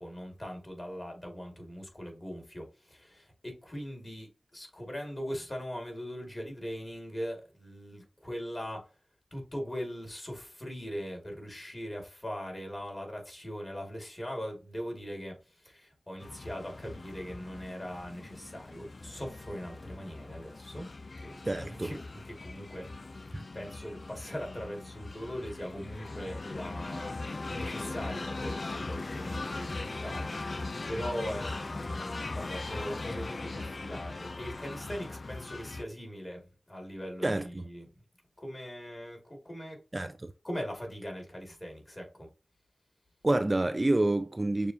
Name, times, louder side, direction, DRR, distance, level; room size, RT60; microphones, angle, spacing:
voice 1, 0.0-8.8 9.3-20.9 21.2-22.0 22.4-22.9 23.5-27.1 27.5-37.9 38.4-39.8 40.4-42.3, equal, 30° left, 2.1 m, -40 dB
sound 1, 16.2-35.8, left 3 dB, 55° left, 0.3 m, -39 dB
voice 2, 21.5-21.9 23.3-23.4 37.2-37.6 39.9-40.3 43.2-44.7, right 2 dB, 35° right, 0.3 m, -28 dB
6.6 x 2.4 x 2.7 m
cardioid pair, 40°, 0 cm